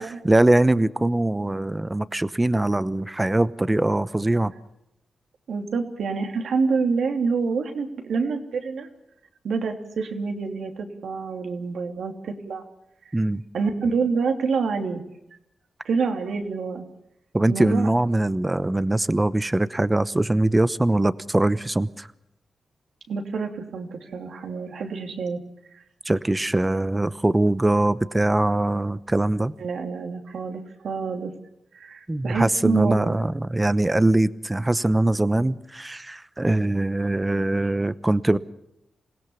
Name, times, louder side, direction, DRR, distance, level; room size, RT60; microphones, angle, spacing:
voice 1, 0.0-4.5 13.1-13.4 17.3-22.1 26.1-29.5 32.1-38.4, right 1 dB, 15° right, 15 dB, 0.9 m, -22 dB
voice 2, 5.5-8.9 9.4-12.6 13.5-15.0 15.8-16.8 17.5-17.9 23.1-25.4 29.6-31.3 31.7-33.2, right 4 dB, 80° right, 4 dB, 3.0 m, -27 dB
27.0 x 17.0 x 7.0 m, 0.83 s
cardioid pair, 75°, 0 cm